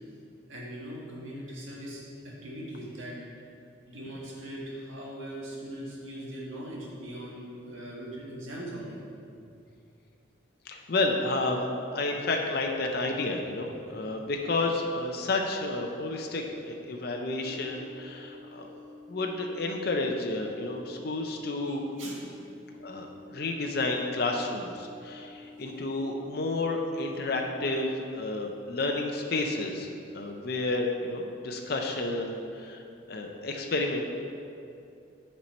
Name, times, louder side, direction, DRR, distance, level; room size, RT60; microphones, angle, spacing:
voice 1, 0.5-3.1 3.9-9.0 13.6-13.7 14.0-14.1 21.6-22.2, right 1 dB, 90° right, -4 dB, 1.7 m, -40 dB
voice 2, 10.7-18.8 19.1-21.8 22.8-23.1 23.3-29.9 30.1-32.8 33.1-34.0, left 2 dB, 50° left, 2 dB, 0.6 m, -31 dB
sound 1, 17.4-27.4, left 2 dB, 60° right, 1.8 m, -49 dB
7.3 x 4.4 x 5.3 m, 2.6 s
head